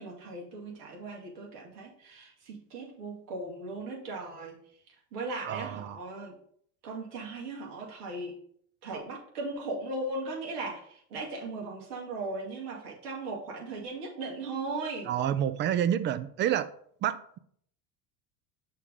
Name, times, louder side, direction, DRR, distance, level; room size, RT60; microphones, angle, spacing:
voice 1, 0.0-4.6 5.1-6.4 6.8-8.3 8.8-15.1, right 2 dB, 75° right, -2 dB, 2.5 m, -38 dB
voice 2, 5.5-5.9 15.1-16.7 17.0-17.4, right 10 dB, 25° right, 14 dB, 0.3 m, -29 dB
6.4 x 3.6 x 5.4 m, 0.63 s
hypercardioid pair, 80°, 47 cm